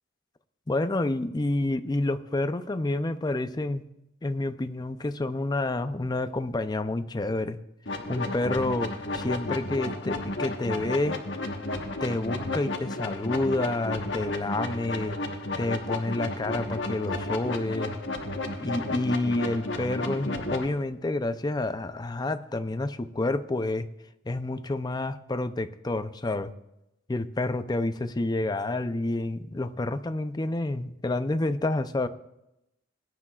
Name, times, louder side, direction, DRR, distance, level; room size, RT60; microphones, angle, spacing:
voice 1, 0.7-3.8 4.2-7.6 8.1-11.2 12.0-15.2 15.6-17.9 18.6-23.9 24.3-26.5 27.1-32.1, left 2 dB, 20° left, 10 dB, 0.5 m, -29 dB
sound 1, 7.9-20.7, left 2 dB, 70° left, 1.2 m, -33 dB
21.0 x 9.8 x 2.4 m, 0.86 s
head